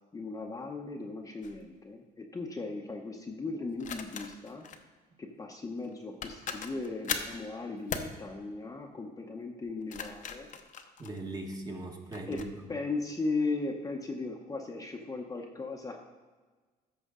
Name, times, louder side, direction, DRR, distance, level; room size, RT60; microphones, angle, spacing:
voice 1, 0.1-4.7 5.2-10.5 12.3-12.4 12.7-16.0, left 3 dB, 20° left, 1 dB, 0.8 m, -37 dB
sound 1, 1.4-1.6 3.8-4.8 5.8-5.9 6.2-7.4 7.9-8.2 9.7-11.5 12.1-12.5, left 6 dB, 50° left, 0.8 m, -39 dB
voice 2, 11.0-12.6, right 2 dB, 20° right, 2 dB, 1.4 m, -39 dB
13.5 x 5.1 x 3.7 m, 1.4 s
cardioid pair, 110°, 17 cm